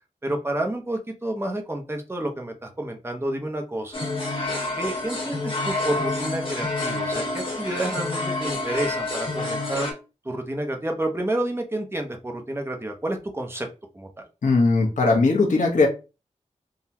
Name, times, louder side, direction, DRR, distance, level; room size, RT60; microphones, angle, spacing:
voice 1, 0.2-4.0 4.8-9.9 10.2-13.7 13.9-14.1, right 1 dB, 20° right, 3 dB, 0.7 m, -29 dB
sound 1, 3.9-9.9, left 2 dB, 45° left, 1.1 m, -28 dB
voice 2, 14.4-15.9, left 3 dB, 75° left, 0 dB, 0.9 m, -19 dB
3.8 x 2.1 x 2.8 m, 0.30 s
wide cardioid pair, 90°, 13 cm